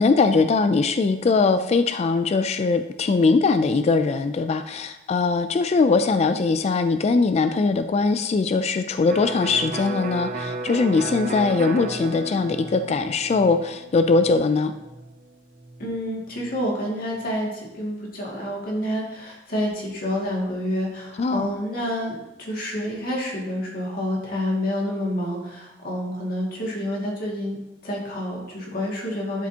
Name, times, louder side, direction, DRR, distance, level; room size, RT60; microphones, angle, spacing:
voice 1, 0.0-14.7 21.2-21.5, left 4 dB, 40° left, 10 dB, 0.3 m, -21 dB
Electric guitar, 9.1-16.7, right 3 dB, 50° right, 0.7 m, -34 dB
voice 2, 15.8-27.6 27.8-29.5, equal, 55° left, -3 dB, 2.2 m, -28 dB
11.5 x 4.9 x 2.8 m, 0.99 s
head